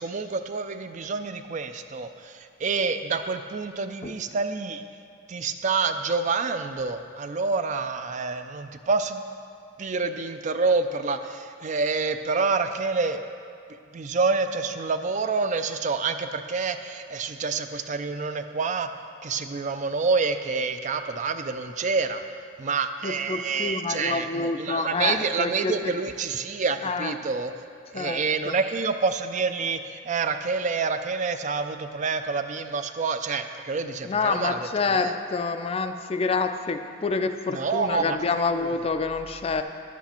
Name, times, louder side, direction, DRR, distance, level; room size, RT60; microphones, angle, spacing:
voice 1, 0.0-4.8 5.3-9.2 9.8-13.2 13.9-18.9 19.2-22.2 22.6-27.5 27.9-35.1 37.5-38.2 38.5-38.7, right 4 dB, 40° right, 9 dB, 0.4 m, -27 dB
voice 2, 23.0-25.9 26.8-27.1 27.9-28.6 34.0-39.6, left 4 dB, 30° left, 8 dB, 0.4 m, -27 dB
10.5 x 8.3 x 4.3 m, 2.4 s
head